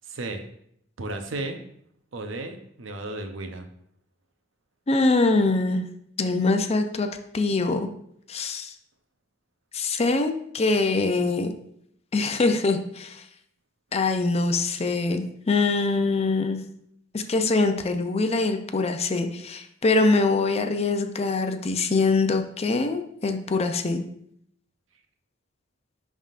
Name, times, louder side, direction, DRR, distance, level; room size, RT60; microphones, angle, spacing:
voice 1, 0.0-0.5 1.0-1.6 2.1-3.7, right 2 dB, 85° right, 6 dB, 0.8 m, -34 dB
voice 2, 4.9-5.8 6.2-7.1 7.3-7.9 8.3-8.7 9.7-11.5 12.1-13.2 13.9-16.6 17.1-24.0, left 3 dB, 35° left, 7 dB, 0.5 m, -23 dB
11.0 x 3.6 x 2.5 m, 0.70 s
head